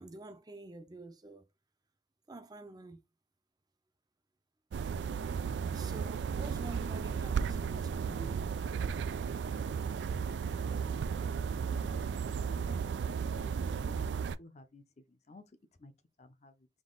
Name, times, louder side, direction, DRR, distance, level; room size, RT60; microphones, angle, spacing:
voice 1, 0.0-1.5 2.3-3.0 5.7-8.5, right 2 dB, 25° right, 0.6 m, -48 dB
sound 1, 4.7-14.4, right 6 dB, 80° right, 0.3 m, -34 dB
voice 2, 10.3-15.4 15.8-15.9 16.2-16.7, left 2 dB, 40° left, 0.7 m, -56 dB
3.7 x 2.8 x 3.9 m
head